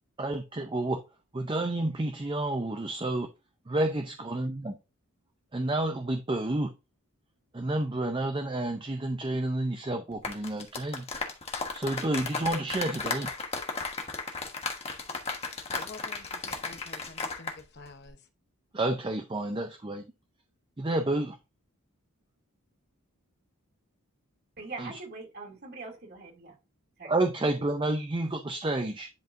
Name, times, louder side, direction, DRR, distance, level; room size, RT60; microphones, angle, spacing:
voice 1, 0.2-1.0 1.3-3.3 3.7-4.7 5.5-6.7 7.5-11.1 11.7-13.3 18.7-20.0 20.8-21.4 24.8-24.9 27.0-29.1, right 2 dB, 20° right, 0.5 m, -30 dB
sound 1, 10.1-17.6 17.9-18.1, left 4 dB, 30° left, 1.2 m, -35 dB
voice 2, 15.7-18.3, left 3 dB, 50° left, 0.9 m, -48 dB
voice 3, 24.6-26.6 27.0-27.1, right 3 dB, 45° right, 2.4 m, -42 dB
10.5 x 4.7 x 2.6 m
head